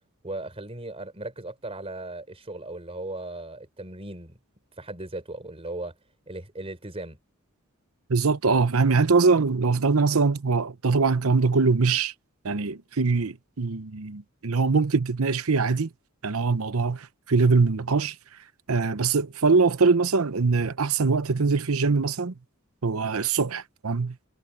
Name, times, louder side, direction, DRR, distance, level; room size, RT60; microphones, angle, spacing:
voice 1, 0.2-4.4 4.8-5.9 6.3-7.2, right 2 dB, 30° right, 4.4 m, -37 dB
voice 2, 8.1-12.1 12.4-15.9 16.2-18.2 18.7-22.3 22.8-24.2, right 4 dB, 90° right, 0.9 m, -23 dB
head